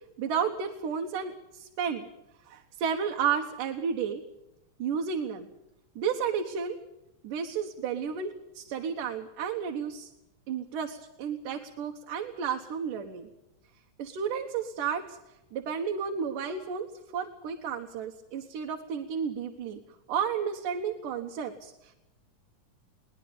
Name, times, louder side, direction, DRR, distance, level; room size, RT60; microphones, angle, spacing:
voice 1, 0.2-2.0 2.5-4.2 4.8-5.5 6.0-6.8 7.2-10.1 10.5-13.3 14.0-15.2 15.5-16.9 17.1-19.8 20.1-22.0, right 7 dB, 90° right, 3 dB, 3.0 m, -32 dB
22.5 x 19.5 x 6.9 m, 0.92 s
omnidirectional pair, 3.6 m